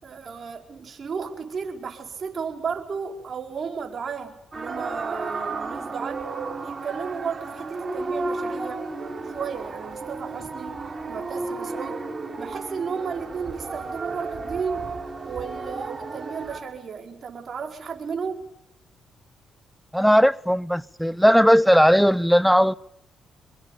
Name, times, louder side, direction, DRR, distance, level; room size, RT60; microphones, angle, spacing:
voice 1, 0.0-6.2 6.6-8.8 9.3-10.8 11.1-12.0 12.4-14.9 15.2-18.4, right 6 dB, 55° right, 5.0 m, -33 dB
sound 1, 4.5-16.6, right 3 dB, 35° right, 6.5 m, -33 dB
voice 2, 19.9-22.7, equal, ahead, 0.9 m, -17 dB
26.5 x 23.0 x 7.3 m
supercardioid pair, 60°, 0 cm